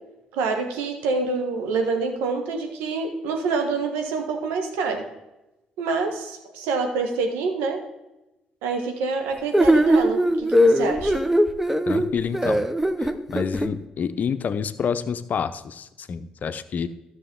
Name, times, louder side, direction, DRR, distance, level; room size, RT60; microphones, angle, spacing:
voice 1, 0.3-5.1 5.8-7.8 8.6-11.2, right 4 dB, 80° right, 4 dB, 1.3 m, -26 dB
sound 1, 9.5-13.7, equal, 10° right, 0.8 m, -20 dB
voice 2, 11.9-12.7 13.0-16.9, left 6 dB, 50° left, 12 dB, 0.7 m, -28 dB
13.0 x 6.5 x 3.8 m, 0.98 s
hypercardioid pair, 50°, 3 cm